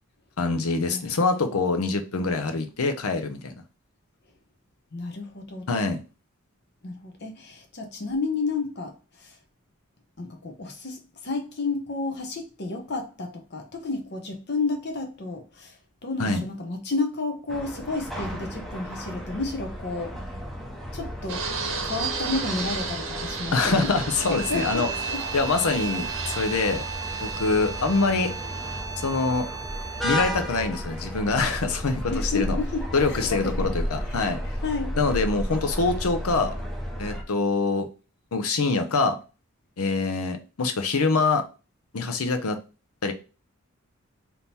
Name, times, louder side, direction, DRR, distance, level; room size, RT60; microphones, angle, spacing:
voice 1, 0.4-3.5 5.7-6.0 16.2-16.4 23.5-24.9 25.3-26.8 27.2-28.3 29.0-29.5 30.0-32.6 32.9-34.4 35.0-36.5 37.0-37.9 38.3-39.2 39.8-41.4 41.9-42.6 43.0-43.1, left 3 dB, 80° left, 0.7 m, -24 dB
voice 2, 4.9-5.7 6.8-9.4 10.2-15.8 16.0-20.1 20.9-21.5 21.8-23.9 24.3-25.2 32.1-33.8 34.1-34.4 34.6-35.0, left 3 dB, 50° left, 0.9 m, -31 dB
sound 1, 17.5-37.2, equal, ahead, 0.7 m, -33 dB
Fixed-wing aircraft airplane, 21.3-28.8, right 5 dB, 60° right, 0.8 m, -34 dB
sound 2, 24.2-30.4, right 6 dB, 20° right, 1.2 m, -35 dB
3.6 x 2.9 x 4.2 m
head